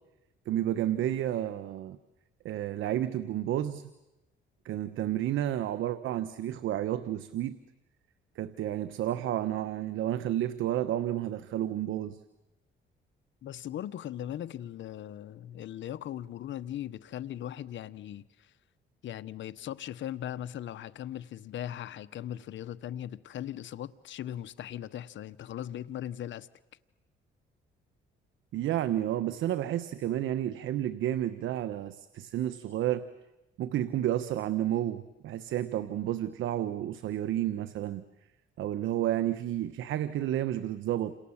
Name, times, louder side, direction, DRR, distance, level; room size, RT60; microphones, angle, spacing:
voice 1, 0.5-2.0 2.4-3.9 4.6-7.6 8.4-12.2 28.5-33.0 33.6-38.0 38.6-41.1, right 12 dB, 80° right, 1.1 m, -31 dB
voice 2, 13.4-18.5 19.0-26.5, left 11 dB, 70° left, 1.1 m, -39 dB
28.5 x 27.5 x 7.3 m
cardioid pair, 90°, 20 cm